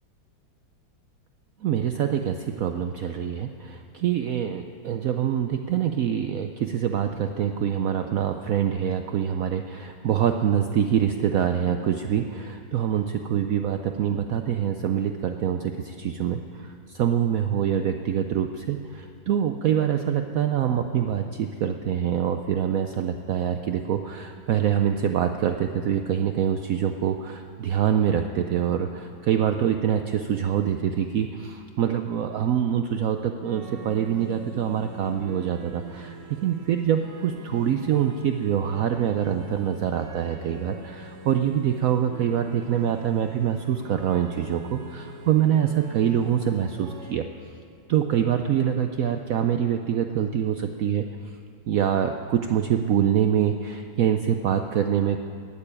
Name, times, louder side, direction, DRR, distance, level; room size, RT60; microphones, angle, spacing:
voice 1, 1.6-36.2 36.4-47.3 47.9-51.0 51.7-55.2, right 9 dB, 80° right, 7 dB, 0.7 m, -25 dB
sound 1, 33.4-47.1, right 2 dB, 45° right, 1.7 m, -43 dB
15.5 x 6.8 x 9.8 m, 2.3 s
omnidirectional pair, 2.1 m